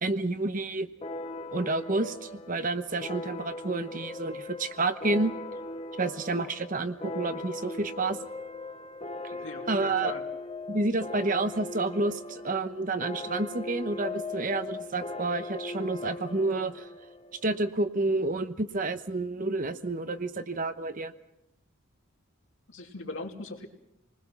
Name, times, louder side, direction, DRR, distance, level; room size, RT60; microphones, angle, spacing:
voice 1, 0.0-0.9 1.5-5.3 6.0-8.2 9.2-9.3 9.7-10.1 10.7-16.9 17.4-21.1, right 2 dB, 40° right, 10 dB, 1.0 m, -29 dB
sound 1, 1.0-18.1, left 2 dB, 25° left, 0.9 m, -39 dB
voice 2, 9.3-10.2 22.7-23.7, left 2 dB, 65° left, 1 dB, 3.0 m, -40 dB
28.0 x 20.0 x 6.0 m, 0.87 s
head